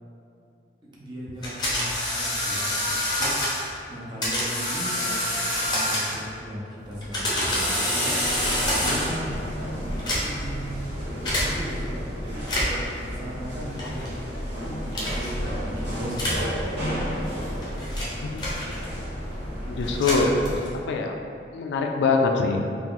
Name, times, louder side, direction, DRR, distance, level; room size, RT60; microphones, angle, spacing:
voice 1, 1.0-3.4 3.9-8.2 8.7-9.3 9.8-17.0, equal, 25° right, -6 dB, 0.6 m, -37 dB
sound 1, 1.4-3.7 4.2-6.3 6.9-9.3 9.9-10.5 11.3-11.5 12.4-12.9 13.8-14.1 14.9-15.3 16.1-16.5 17.3-19.0 19.8-20.8, left 1 dB, 25° left, 0.6 m, -27 dB
sound 2, 8.2-20.8, equal, 85° right, 1.2 m, -32 dB
voice 2, 19.6-20.3 20.9-21.2 21.5-22.7, left 4 dB, 75° left, 3 dB, 0.3 m, -23 dB
2.8 x 2.3 x 3.7 m, 2.5 s
head